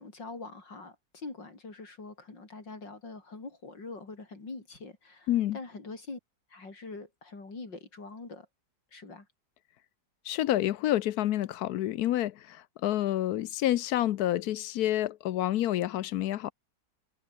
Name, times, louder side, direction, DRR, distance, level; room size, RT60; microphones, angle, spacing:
voice 1, 0.0-6.2 6.5-8.5 8.9-9.3, left 3 dB, 85° left, 5.3 m, -44 dB
voice 2, 5.3-5.6 10.3-12.6 12.8-16.5, left 13 dB, 70° left, 1.1 m, -28 dB
omnidirectional pair, 1.9 m